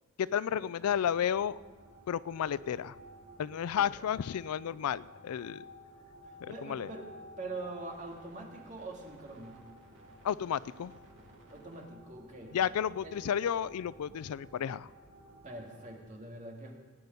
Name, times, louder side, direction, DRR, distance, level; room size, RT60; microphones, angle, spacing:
voice 1, 0.2-1.6 2.1-3.0 3.4-5.7 6.4-6.9 10.2-10.9 12.5-14.9, left 8 dB, 90° left, 20 dB, 0.4 m, -32 dB
sound 1, 0.8-16.0, equal, 55° right, 2.3 m, -54 dB
voice 2, 6.2-7.1 7.4-9.7 11.5-12.6 13.0-13.2 15.4-16.7, right 2 dB, 35° right, 0 dB, 2.2 m, -44 dB
17.5 x 9.8 x 5.3 m, 1.4 s
head